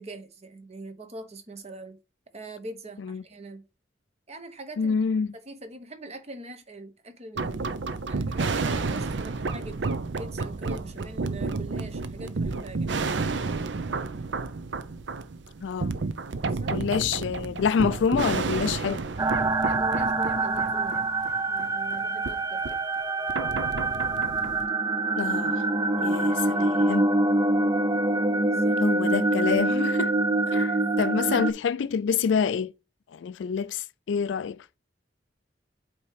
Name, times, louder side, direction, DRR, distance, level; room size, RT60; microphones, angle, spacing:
voice 1, 0.0-2.0 2.3-3.6 4.3-5.0 5.3-7.7 8.0-12.9 16.5-16.8 19.6-21.1 21.5-22.8 28.5-28.8 30.5-30.6 31.2-31.3, right 2 dB, 35° right, 1.0 m, -42 dB
voice 2, 4.8-5.3 15.6-15.9 16.7-19.0 25.2-25.6 26.0-27.1 28.8-30.1 30.5-30.7 31.0-32.7 33.1-34.8, left 6 dB, 85° left, 0.3 m, -27 dB
sound 1, 7.4-22.0 22.2-22.3 22.6-22.7 23.3-24.7, right 4 dB, 80° right, 0.6 m, -31 dB
sound 2, 19.2-31.5, right 2 dB, 20° right, 0.4 m, -25 dB
8.5 x 2.9 x 4.7 m
head